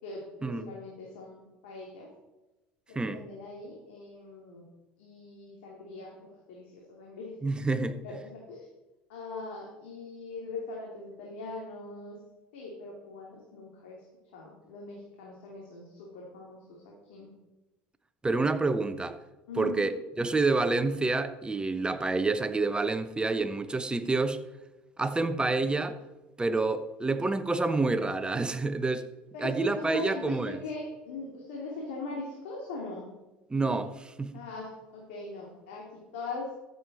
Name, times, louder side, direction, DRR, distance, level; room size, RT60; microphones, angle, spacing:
voice 1, 0.0-2.1 2.9-4.6 5.0-7.3 7.7-8.7 9.1-12.2 12.5-14.0 14.3-17.3 19.5-19.9 29.3-33.1 34.3-36.5, left 3 dB, 80° left, 2.8 m, -41 dB
voice 2, 7.4-8.0 18.2-19.2 19.5-24.4 25.0-26.0 26.4-29.1 29.4-30.6 33.5-34.3, right 3 dB, 15° right, 1.1 m, -28 dB
13.5 x 8.1 x 4.2 m
hypercardioid pair, 75°, 6 cm